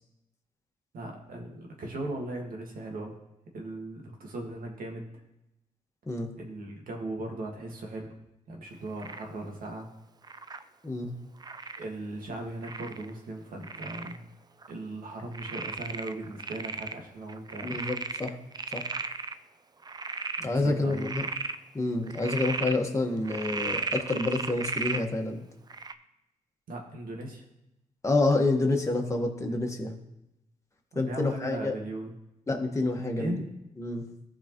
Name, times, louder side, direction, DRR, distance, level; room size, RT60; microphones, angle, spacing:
voice 1, 0.9-3.2 3.5-5.0 6.4-8.1 8.5-9.9 11.8-14.2 14.7-17.8 20.4-21.1 26.7-27.4 30.9-32.1 33.2-33.5, right 2 dB, 70° right, 1 dB, 1.9 m, -38 dB
Frog, 9.0-9.3 10.2-10.6 11.4-11.8 12.6-13.1 13.6-14.2 14.6-14.7 15.3-17.0 17.3-19.3 19.8-20.5 20.9-21.6 22.1-22.8 23.2-25.0 25.7-25.9, right 4 dB, 25° right, 0.5 m, -35 dB
voice 2, 17.6-18.4 18.7-18.8 20.4-21.2 21.7-25.4 28.0-29.9 30.9-31.7 32.5-33.4 33.8-34.0, left 2 dB, 20° left, 1 dB, 1.6 m, -28 dB
14.5 x 4.9 x 3.1 m, 0.90 s
cardioid pair, 75°, 15 cm